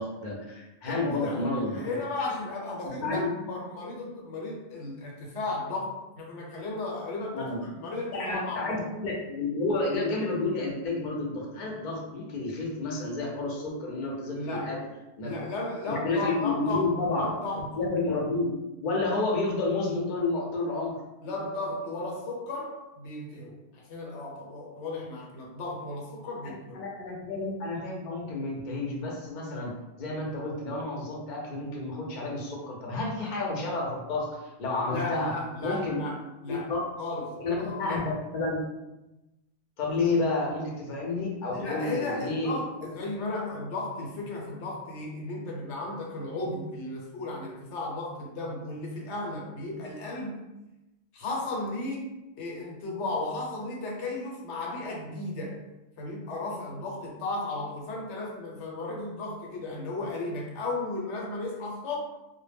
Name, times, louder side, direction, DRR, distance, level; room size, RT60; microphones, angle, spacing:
voice 1, 0.0-2.0 2.8-3.3 7.3-7.6 8.1-14.8 15.2-15.5 15.9-17.2 17.7-18.5 18.8-20.9 26.7-29.7 30.0-35.3 35.6-36.0 36.5-36.8 37.4-38.6 39.8-42.6, left 3 dB, 50° left, -2 dB, 0.7 m, -30 dB
voice 2, 0.9-8.7 14.3-14.7 15.2-16.9 17.2-17.7 21.2-26.8 34.8-36.2 36.4-36.7 37.0-38.1 41.5-50.4 51.1-55.6 56.0-62.0, left 2 dB, 80° left, -2 dB, 1.0 m, -35 dB
2.1 x 2.1 x 3.3 m, 0.97 s
omnidirectional pair, 1.2 m